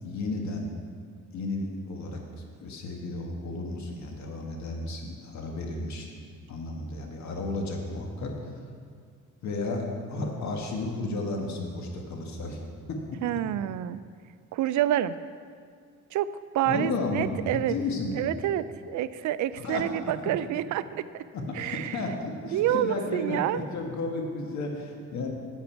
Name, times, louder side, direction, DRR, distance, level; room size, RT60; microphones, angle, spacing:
voice 1, 0.0-0.7 1.3-6.1 6.5-8.6 9.4-12.6 12.9-13.2 16.6-18.2 19.5-19.8 21.3-25.3, left 2 dB, 65° left, 1 dB, 1.7 m, -33 dB
voice 2, 13.2-14.0 14.5-15.1 16.1-16.3 16.5-17.7 18.2-21.2 21.6-22.0 22.5-23.6, right 12 dB, 70° right, 15 dB, 0.4 m, -28 dB
10.5 x 8.2 x 4.6 m, 2.1 s
cardioid pair, 90°, 30 cm